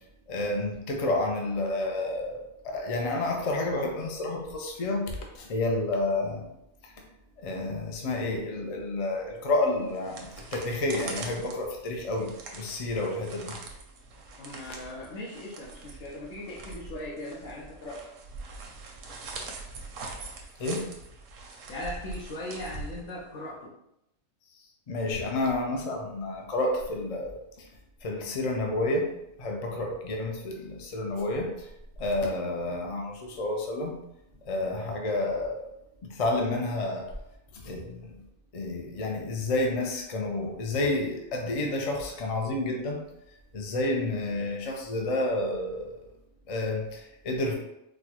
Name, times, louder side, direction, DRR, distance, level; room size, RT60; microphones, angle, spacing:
voice 1, 0.3-6.5 6.8-6.9 7.4-13.5 20.6-20.9 24.9-27.7 28.0-29.1 29.4-31.7 32.0-34.0 34.4-35.6 36.0-37.1 37.5-38.1 38.5-43.0 43.5-46.0 46.5-47.5, left 2 dB, 60° left, 1 dB, 0.3 m, -30 dB
sound 1, 9.8-23.5, right 3 dB, 85° right, 1.0 m, -43 dB
voice 2, 14.4-18.0 21.7-23.7, left 1 dB, 90° left, -5 dB, 1.1 m, -39 dB
4.2 x 2.2 x 2.9 m, 0.83 s
omnidirectional pair, 1.3 m